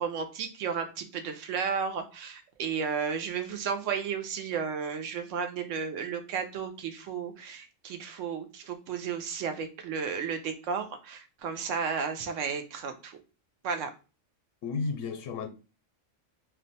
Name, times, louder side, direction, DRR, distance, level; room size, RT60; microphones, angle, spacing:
voice 1, 0.0-13.2 13.6-13.9, right 6 dB, 75° right, 0.9 m, -33 dB
voice 2, 14.6-15.5, left 4 dB, 80° left, 1.0 m, -32 dB
2.5 x 2.2 x 3.9 m
omnidirectional pair, 1.3 m